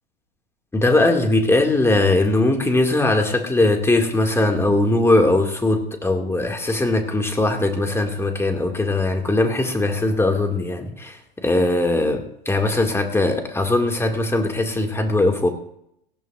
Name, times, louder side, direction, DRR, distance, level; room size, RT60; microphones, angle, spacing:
voice 1, 0.7-15.5, left 2 dB, 10° left, 4 dB, 2.1 m, -20 dB
18.5 x 15.0 x 2.5 m, 0.72 s
hypercardioid pair, 100°, 29 cm